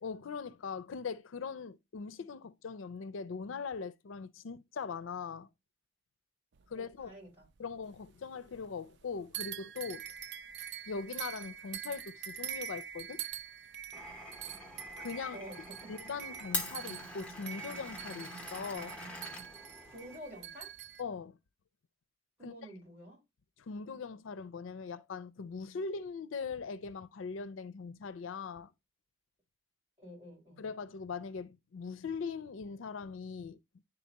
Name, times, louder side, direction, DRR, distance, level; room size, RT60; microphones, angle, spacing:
voice 1, 0.0-5.5 6.7-7.1 7.6-10.0 10.9-13.2 15.0-15.4 15.9-19.0 21.0-21.4 22.4-22.5 23.6-28.7 30.6-33.6, left 5 dB, 80° left, 0.4 m, -41 dB
sound 1, 6.5-8.1 8.4-9.1 9.3-21.0, right 9 dB, 55° right, 0.4 m, -45 dB
voice 2, 6.7-7.5 14.5-14.6 15.3-15.9 19.9-20.7 22.4-23.2 30.0-30.7, equal, 10° right, 4.8 m, -49 dB
Glass, 13.9-20.2, left 2 dB, 5° left, 0.8 m, -43 dB
10.5 x 3.8 x 2.8 m
head